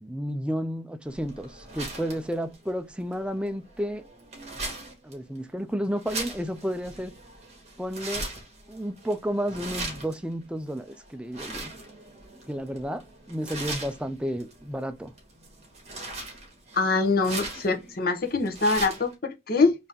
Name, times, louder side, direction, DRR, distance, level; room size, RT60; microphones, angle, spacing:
voice 1, 0.0-4.0 5.0-7.1 7.8-8.3 8.7-11.7 12.5-13.0 13.3-15.1, equal, 5° right, 0.4 m, -31 dB
sound 1, 1.0-19.1, right 2 dB, 35° right, 1.7 m, -40 dB
voice 2, 16.7-19.7, left 3 dB, 55° left, 0.9 m, -24 dB
4.0 x 2.8 x 3.5 m
head